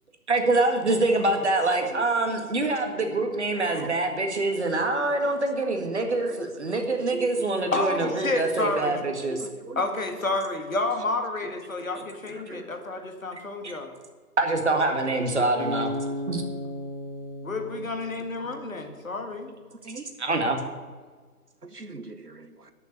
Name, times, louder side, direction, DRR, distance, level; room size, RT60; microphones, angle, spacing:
voice 1, 0.3-9.4 13.6-13.7 14.4-15.9 16.3-16.4 20.2-20.6, right 2 dB, 45° right, 4 dB, 1.9 m, -25 dB
voice 2, 6.1-6.5 7.0-7.7 9.3-9.8 11.9-12.7 15.4-15.6 18.4-18.5 19.8-20.1 21.6-22.7, right 3 dB, 80° right, 10 dB, 1.3 m, -41 dB
voice 3, 7.7-9.1 9.7-13.9 17.4-19.5, left 2 dB, 60° left, 5 dB, 1.8 m, -30 dB
Acoustic guitar, 15.6-18.8, left 1 dB, 35° left, 2.4 m, -34 dB
11.5 x 7.1 x 8.2 m, 1.5 s
figure-of-eight pair, 150°, 46 cm